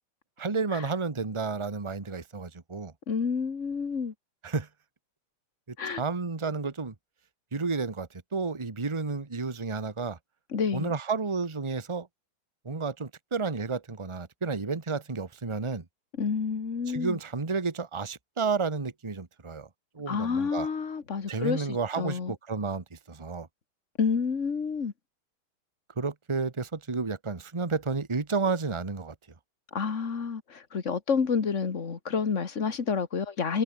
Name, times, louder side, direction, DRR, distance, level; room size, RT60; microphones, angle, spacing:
voice 1, 0.4-2.9 4.4-4.7 5.7-6.9 7.5-10.2 10.7-12.1 12.6-15.8 16.9-19.7 19.9-20.7 21.3-23.5 26.0-29.1, right 4 dB, 15° right, 1.3 m, -31 dB
voice 2, 3.1-4.1 5.8-6.0 10.5-10.9 16.2-17.2 20.1-22.3 24.0-24.9 29.7-33.6, left 5 dB, 35° left, 1.9 m, -29 dB
omnidirectional pair, 2.3 m